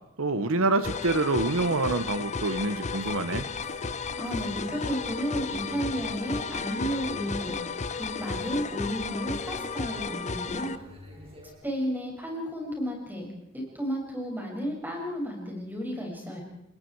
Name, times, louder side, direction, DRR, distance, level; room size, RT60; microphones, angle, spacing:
voice 1, 0.2-3.5, right 2 dB, 70° right, 11 dB, 1.2 m, -26 dB
sound 1, 0.8-10.8, left 5 dB, 35° left, 0.9 m, -34 dB
sound 2, 2.9-11.5, left 1 dB, 30° right, 5.6 m, -49 dB
voice 2, 4.2-7.6 8.0-10.7 11.6-13.3 13.5-16.4, equal, 10° right, -1 dB, 6.9 m, -32 dB
28.5 x 21.5 x 4.8 m, 0.90 s
head